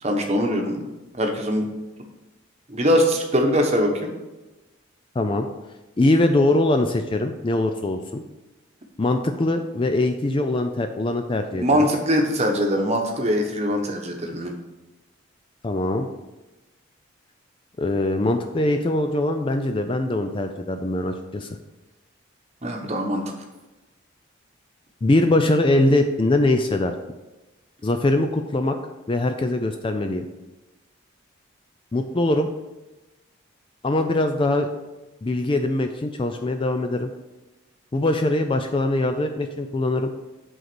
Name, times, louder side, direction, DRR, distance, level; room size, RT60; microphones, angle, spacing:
voice 1, 0.0-0.9 1.1-1.6 2.7-4.1 11.5-14.5 22.6-23.2, equal, 30° right, 2 dB, 1.0 m, -22 dB
voice 2, 5.2-5.5 6.0-8.2 9.0-11.9 15.6-16.1 17.8-21.5 25.0-26.9 27.8-28.8 29.1-30.2 31.9-32.5 33.8-34.7 35.2-37.1 37.9-40.1, left 2 dB, 25° left, 6 dB, 0.3 m, -22 dB
7.9 x 3.9 x 6.0 m, 1.1 s
head